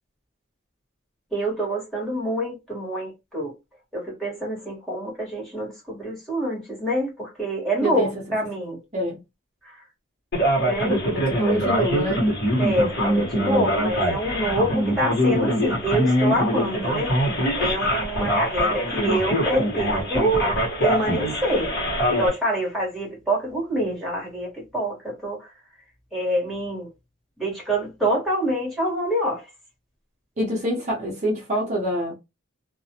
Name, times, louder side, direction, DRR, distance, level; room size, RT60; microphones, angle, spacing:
voice 1, 1.3-3.5 3.9-8.8 9.6-9.7 10.7-11.0 11.5-11.6 12.6-17.2 17.6-20.5 20.8-21.7 22.1-25.5 26.1-26.9 27.4-29.4, right 1 dB, ahead, 1.3 m, -26 dB
Male speech man speaking, 10.3-22.3, equal, 50° left, 1.1 m, -23 dB
voice 2, 11.1-12.2 30.4-32.1, right 1 dB, 35° right, 0.7 m, -25 dB
2.4 x 2.1 x 2.7 m
head